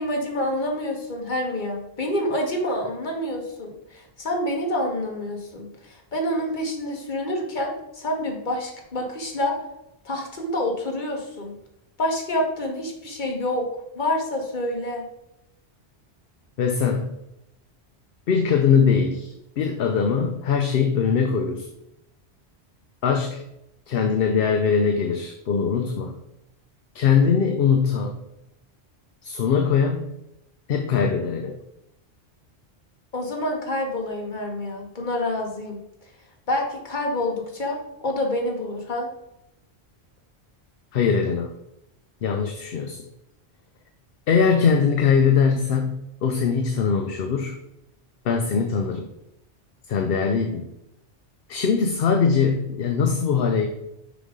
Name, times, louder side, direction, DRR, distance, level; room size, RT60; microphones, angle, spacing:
voice 1, 0.0-9.6 10.0-11.5 12.0-13.7 13.9-15.0 33.1-35.8 36.5-39.1, left 1 dB, 45° left, 1 dB, 1.4 m, -27 dB
voice 2, 16.6-17.1 18.3-21.7 23.0-23.4 23.9-26.1 26.9-28.1 29.2-30.1 30.7-31.6 40.9-41.5 42.2-43.1 44.3-47.6 48.2-49.1 49.9-50.7 51.5-53.7, left 6 dB, 60° left, 5 dB, 0.8 m, -21 dB
6.8 x 5.1 x 3.7 m, 0.86 s
omnidirectional pair, 1.1 m